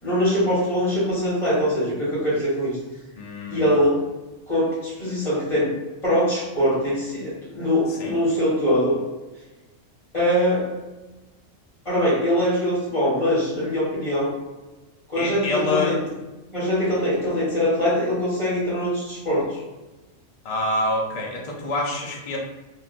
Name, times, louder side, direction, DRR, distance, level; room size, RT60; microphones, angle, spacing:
voice 1, 0.0-2.8 3.5-4.0 4.5-5.7 6.0-9.0 10.1-10.7 11.8-14.3 15.1-16.0 16.5-19.6, equal, 25° left, -11 dB, 1.7 m, -22 dB
voice 2, 3.2-3.7 7.9-8.1 15.2-16.0 20.4-22.4, left 2 dB, 50° left, -1 dB, 0.4 m, -26 dB
3.5 x 2.4 x 2.5 m, 1.1 s
omnidirectional pair, 1.3 m